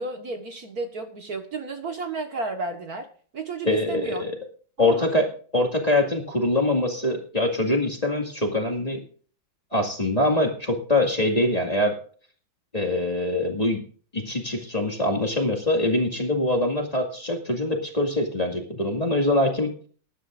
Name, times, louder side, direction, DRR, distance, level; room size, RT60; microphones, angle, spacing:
voice 1, 0.0-3.1 3.3-4.2 4.8-5.1, right 3 dB, 50° right, 6 dB, 1.8 m, -32 dB
voice 2, 3.6-4.3 4.8-5.3 5.5-9.0 9.7-12.0 12.7-13.8 14.1-19.7, left 1 dB, 20° left, 2 dB, 2.0 m, -23 dB
20.0 x 11.0 x 2.5 m, 0.43 s
omnidirectional pair, 2.2 m